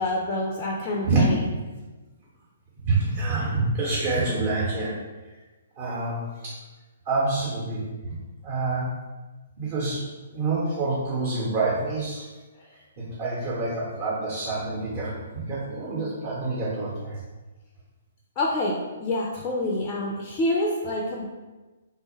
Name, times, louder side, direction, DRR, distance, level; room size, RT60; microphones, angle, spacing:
voice 1, 0.0-1.4 18.4-21.3, left 1 dB, 25° left, -2 dB, 0.4 m, -27 dB
voice 2, 1.0-1.5 2.8-5.0 5.8-6.6 7.0-8.1 8.4-8.9 9.6-10.0 10.3-12.3 12.7-17.2, right 3 dB, 35° right, -7 dB, 0.8 m, -27 dB
3.2 x 2.1 x 3.1 m, 1.2 s
figure-of-eight pair, 125°, 0 cm